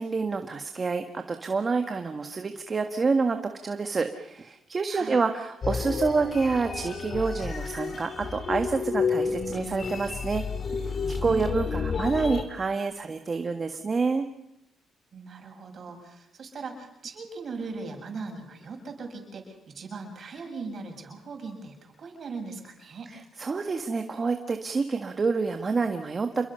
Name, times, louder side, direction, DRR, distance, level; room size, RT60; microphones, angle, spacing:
voice 1, 0.0-10.4 10.7-14.3 23.1-26.5, right 4 dB, 35° right, 6 dB, 1.7 m, -28 dB
voice 2, 4.9-5.2 11.2-11.5 15.1-23.1, right 4 dB, 50° right, 3 dB, 7.0 m, -39 dB
sound 1, 5.6-12.4, left 5 dB, 45° left, 3.0 m, -31 dB
28.0 x 22.5 x 5.7 m, 0.84 s
cardioid pair, 90°, 0 cm